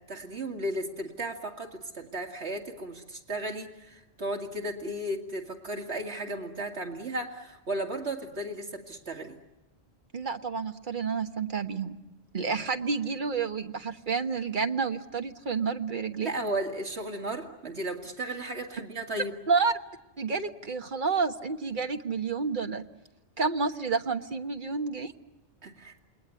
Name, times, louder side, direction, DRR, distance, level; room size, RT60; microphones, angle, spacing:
voice 1, 0.1-9.4 16.2-19.3 25.6-25.9, right 1 dB, 75° right, 2 dB, 2.7 m, -35 dB
voice 2, 10.1-12.0 12.3-16.3 19.5-19.7 20.2-22.8 23.4-25.1, right 5 dB, 50° right, 6 dB, 1.5 m, -29 dB
28.5 x 21.5 x 9.6 m, 0.96 s
omnidirectional pair, 1.1 m